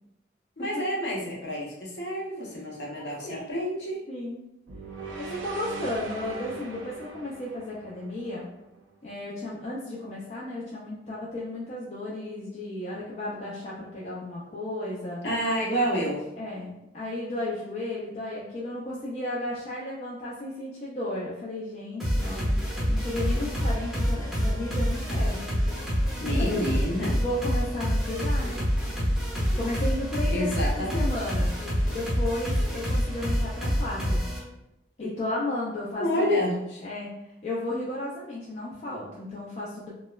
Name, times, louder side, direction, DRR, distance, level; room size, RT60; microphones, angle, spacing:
voice 1, 0.6-4.1 15.2-16.2 26.2-27.2 28.4-28.5 30.3-31.1 36.0-36.8, equal, 60° left, -4 dB, 0.7 m, -29 dB
voice 2, 2.4-3.6 4.1-4.4 5.2-8.4 9.0-15.2 16.4-25.4 26.2-26.6 27.2-28.6 29.6-31.5 31.9-34.2 35.0-36.4 36.8-37.1 37.4-39.9, left 1 dB, 35° left, -6 dB, 0.3 m, -34 dB
sound 1, 4.7-8.9, right 3 dB, 85° right, 0.4 m, -40 dB
sound 2, 22.0-34.4, equal, ahead, 0.7 m, -27 dB
2.9 x 2.0 x 2.2 m, 0.91 s
head